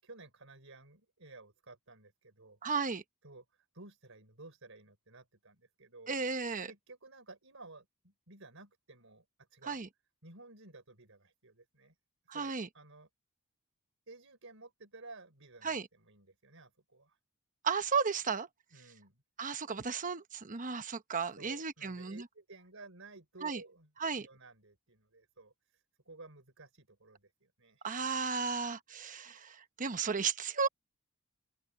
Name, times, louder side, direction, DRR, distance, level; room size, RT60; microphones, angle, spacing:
voice 1, 0.0-2.6 3.2-6.2 6.7-9.8 10.2-12.0 12.3-13.1 14.1-17.2 18.7-19.2 21.4-23.9 24.2-27.9, right 3 dB, 65° right, 5.6 m, -54 dB
voice 2, 2.6-3.0 6.1-6.7 9.7-9.9 12.3-12.7 15.6-15.9 17.6-18.5 19.4-22.2 23.4-23.6 24.0-24.3 27.8-30.7, right 5 dB, 35° right, 1.0 m, -34 dB
head